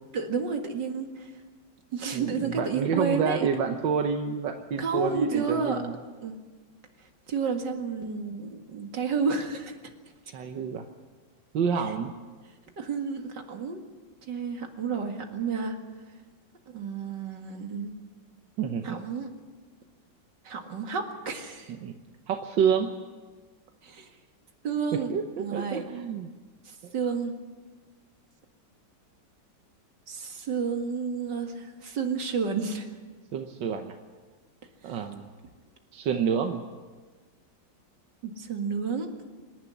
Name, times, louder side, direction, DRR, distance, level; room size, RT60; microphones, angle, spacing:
voice 1, 0.1-1.3 1.9-3.5 4.8-5.8 6.2-6.4 7.3-9.7 11.8-11.9 12.8-13.8 14.3-15.8 16.7-17.9 18.8-19.3 20.4-21.7 23.8-24.1 24.6-25.1 25.4-25.9 26.7-27.4 30.1-32.9 34.8-35.0 38.2-39.2, right 5 dB, 75° right, 4 dB, 2.6 m, -31 dB
voice 2, 2.1-5.9 10.3-10.9 11.5-12.1 18.6-19.0 21.8-22.0 22.3-22.9 24.9-26.3 30.4-30.5 33.3-34.0 34.8-35.3 35.9-36.6, right 7 dB, 90° right, 5 dB, 1.7 m, -28 dB
26.5 x 11.0 x 9.9 m, 1.4 s
omnidirectional pair, 1.9 m